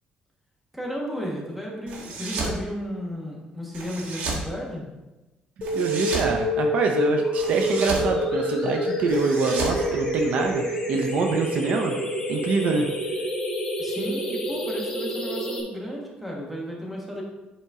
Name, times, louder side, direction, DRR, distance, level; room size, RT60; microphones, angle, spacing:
voice 1, 0.7-4.8 13.8-17.2, equal, 5° right, -2 dB, 1.5 m, -33 dB
sound 1, 1.9-2.6 3.7-4.5 5.6-6.3 7.4-8.1 9.1-10.6, right 3 dB, 75° right, 1.4 m, -32 dB
sound 2, 5.6-15.6, equal, 25° left, 1.4 m, -27 dB
voice 2, 5.7-12.0 12.3-12.9, right 4 dB, 55° right, 3 dB, 0.7 m, -25 dB
8.4 x 4.4 x 3.6 m, 1.1 s
cardioid pair, 150°, 3 cm